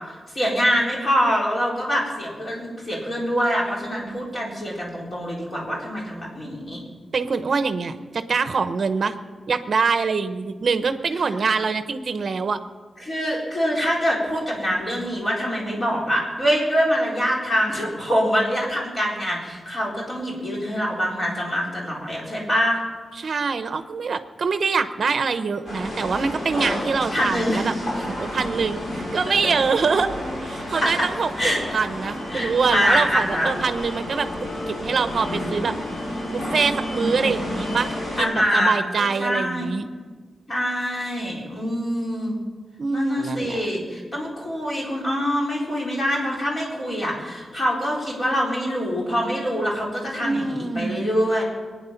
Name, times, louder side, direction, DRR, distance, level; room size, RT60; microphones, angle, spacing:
voice 1, 0.1-6.8 13.0-22.8 27.1-27.7 30.8-31.1 31.4-31.6 32.3-33.5 38.2-39.7 40.5-42.4 42.9-51.4, equal, 30° left, -3 dB, 4.2 m, -24 dB
voice 2, 7.1-9.2 9.5-12.6 23.2-27.7 28.0-30.1 30.4-34.3 34.7-35.7 36.3-39.9 42.8-43.7 50.2-51.1, right 5 dB, 50° right, 10 dB, 0.8 m, -24 dB
sound 1, 25.6-38.2, left 1 dB, 55° left, 6.6 m, -30 dB
23.0 x 9.7 x 5.8 m, 1.5 s
wide cardioid pair, 165°, 0 cm